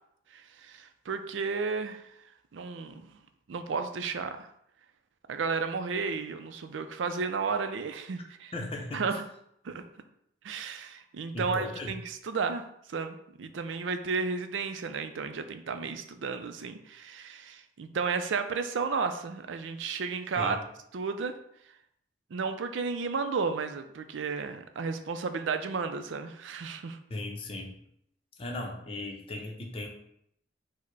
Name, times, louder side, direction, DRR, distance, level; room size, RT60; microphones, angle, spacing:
voice 1, 0.3-2.1 2.5-3.2 3.5-4.5 5.3-8.5 8.9-9.3 9.6-9.8 10.4-20.6 20.9-21.3 22.3-27.0, right 5 dB, 80° right, 8 dB, 0.4 m, -33 dB
voice 2, 8.5-9.2 11.3-11.9 20.4-20.6 27.1-27.8 28.4-29.9, left 2 dB, 30° left, 1 dB, 0.6 m, -37 dB
4.7 x 2.1 x 4.6 m, 0.73 s
head